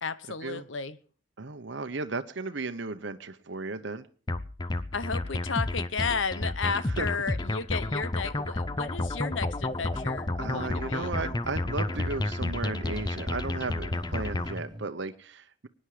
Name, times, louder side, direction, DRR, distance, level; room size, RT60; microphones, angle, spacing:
voice 1, 0.0-1.0 4.9-11.1, left 5 dB, 70° left, 14 dB, 1.0 m, -33 dB
voice 2, 1.4-4.1 7.0-7.1 10.4-15.7, right 3 dB, 60° right, 9 dB, 0.9 m, -35 dB
sound 1, 4.3-14.6, left 2 dB, 20° left, 0.6 m, -31 dB
sound 2, 9.6-14.9, equal, 20° right, 1.0 m, -46 dB
23.5 x 10.0 x 5.0 m, 0.41 s
head